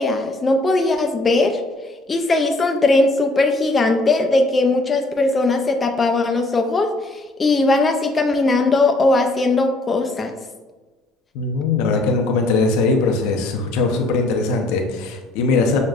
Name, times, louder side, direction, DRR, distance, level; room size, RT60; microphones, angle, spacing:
voice 1, 0.0-1.6 2.1-10.3, left 2 dB, 20° left, 4 dB, 0.3 m, -19 dB
voice 2, 11.3-15.8, left 3 dB, 75° left, 3 dB, 0.6 m, -20 dB
6.3 x 2.1 x 2.4 m, 1.2 s
cardioid pair, 130°, 0 cm